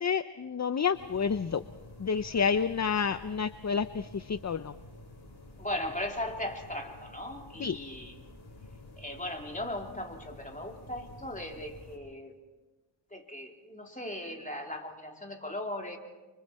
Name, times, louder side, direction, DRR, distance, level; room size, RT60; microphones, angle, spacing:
voice 1, 0.0-1.6 2.0-4.7 7.6-7.8, left 6 dB, 35° left, 13 dB, 0.6 m, -29 dB
sound 1, 0.9-12.0, left 2 dB, 50° left, 4.8 m, -50 dB
voice 2, 5.6-8.2 9.0-12.3 13.1-16.0, left 1 dB, 15° left, 2 dB, 3.2 m, -38 dB
30.0 x 24.5 x 4.3 m, 1.2 s
wide cardioid pair, 70°, 49 cm